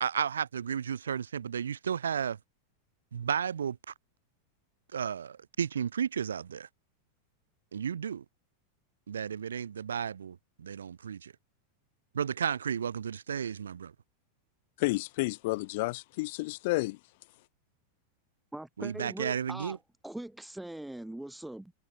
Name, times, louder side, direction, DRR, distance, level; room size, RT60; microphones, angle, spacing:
voice 1, 0.0-2.4 3.1-3.9 4.9-6.7 7.7-8.2 9.1-11.3 12.1-13.9 18.8-19.8, right 8 dB, 70° right, 1.1 m, -33 dB
voice 2, 14.8-17.0, left 22 dB, 50° left, 0.5 m, -31 dB
voice 3, 18.5-19.8 20.0-21.7, right 1 dB, 5° right, 0.9 m, -41 dB
figure-of-eight pair, 90°, 0 cm